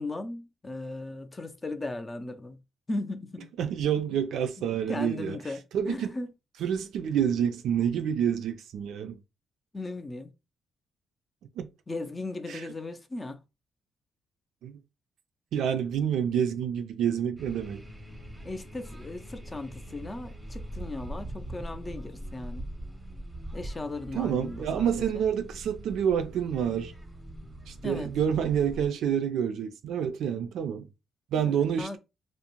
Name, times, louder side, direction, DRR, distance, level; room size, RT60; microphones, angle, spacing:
voice 1, 0.0-2.6 2.9-3.5 4.9-6.3 9.7-10.3 11.9-13.4 18.4-22.7 23.5-25.3 27.8-28.1 31.4-32.0, left 2 dB, 20° left, 0.4 m, -37 dB
voice 2, 3.6-5.4 5.7-6.1 6.6-9.2 11.6-11.7 12.5-12.6 14.6-14.8 15.5-17.8 24.1-26.9 27.7-30.9 31.3-32.0, right 8 dB, 75° right, 0.3 m, -28 dB
sound 1, 17.4-28.9, right 1 dB, 10° right, 0.7 m, -42 dB
2.5 x 2.0 x 2.9 m
cardioid pair, 90°, 0 cm